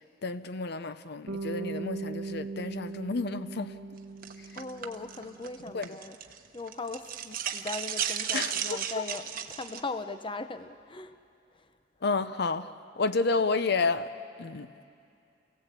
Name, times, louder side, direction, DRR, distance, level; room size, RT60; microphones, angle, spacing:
voice 1, 0.2-3.8 5.7-5.9 8.3-9.0 12.0-14.1 14.4-14.7, left 4 dB, 60° left, 12 dB, 0.7 m, -30 dB
Bass guitar, 1.3-5.5, right 3 dB, 80° right, 0.9 m, -39 dB
sound 1, 4.2-6.4 6.7-9.8, right 9 dB, 50° right, 1.1 m, -34 dB
voice 2, 4.5-6.2 6.5-11.2 11.5-11.7, left 3 dB, 30° left, 10 dB, 0.7 m, -39 dB
29.0 x 17.0 x 8.2 m, 2.5 s
head